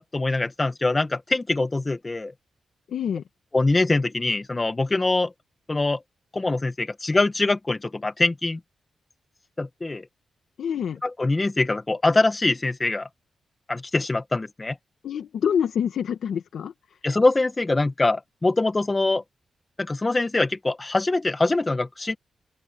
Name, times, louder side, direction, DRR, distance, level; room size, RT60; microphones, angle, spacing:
voice 1, 0.0-2.3 3.5-5.3 5.7-6.0 6.3-8.6 9.6-10.0 11.0-13.1 13.7-14.8 17.0-19.2 19.8-22.2, left 2 dB, 20° left, 1.5 m, -23 dB
voice 2, 2.9-3.2 10.6-11.0 15.0-16.7, left 8 dB, 80° left, 1.8 m, -26 dB
open air
wide cardioid pair, 120°, 0 cm